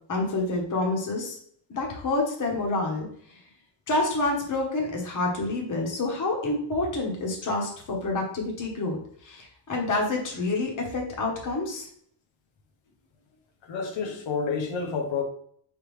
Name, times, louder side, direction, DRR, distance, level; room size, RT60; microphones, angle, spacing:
voice 1, 0.1-1.4 1.7-3.1 3.9-11.9, left 2 dB, 40° left, 1.0 m, -28 dB
voice 2, 13.6-15.2, left 5 dB, 80° left, 1.0 m, -29 dB
4.6 x 3.5 x 3.1 m
wide cardioid pair, 155°, 45 cm